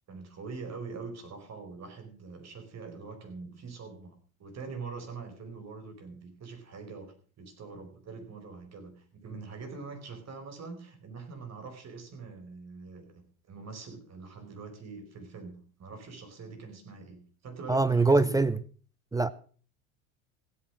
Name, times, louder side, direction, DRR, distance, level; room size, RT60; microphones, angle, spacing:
voice 1, 0.1-18.4, right 4 dB, 35° right, 4.8 m, -44 dB
voice 2, 17.7-18.6 19.1-19.3, right 3 dB, 10° right, 0.5 m, -23 dB
16.0 x 8.5 x 6.2 m
hypercardioid pair, 85°, 43 cm